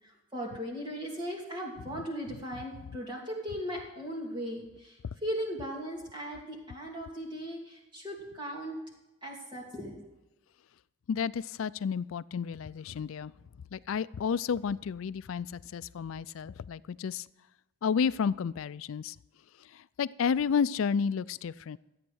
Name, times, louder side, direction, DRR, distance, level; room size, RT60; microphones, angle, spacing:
voice 1, 0.0-8.8 9.2-10.0, equal, 20° right, -1 dB, 2.7 m, -38 dB
voice 2, 11.1-13.3 13.7-17.3 17.8-19.2 19.7-21.8, left 6 dB, 75° left, 18 dB, 0.4 m, -31 dB
13.5 x 8.8 x 6.3 m, 0.96 s
head